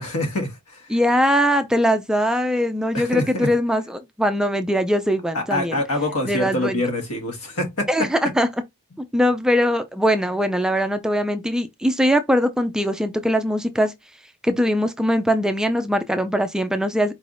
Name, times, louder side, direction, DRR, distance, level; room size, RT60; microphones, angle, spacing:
voice 1, 0.0-0.8 2.9-3.5 5.3-8.1, left 1 dB, 75° left, 1.5 m, -25 dB
voice 2, 0.9-5.8 6.2-6.8 7.9-8.5 9.1-13.9 14.4-17.1, equal, 5° right, 0.3 m, -21 dB
4.5 x 3.3 x 2.5 m
head